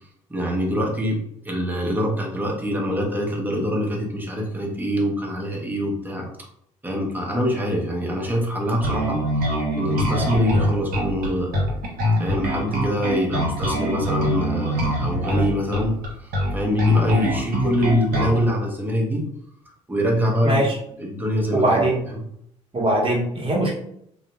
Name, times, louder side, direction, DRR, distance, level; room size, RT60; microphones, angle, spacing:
voice 1, 0.3-6.3 6.8-11.5 12.2-19.3 19.9-20.6 21.0-21.8 22.1-22.2, equal, 10° right, -1 dB, 1.0 m, -24 dB
Bass guitar, 8.8-18.4, equal, 65° right, 1.0 m, -23 dB
voice 2, 20.4-20.8 21.5-22.0 22.7-23.7, right 1 dB, 30° right, -2 dB, 1.1 m, -21 dB
2.4 x 2.1 x 3.0 m, 0.70 s
hypercardioid pair, 55°, 17 cm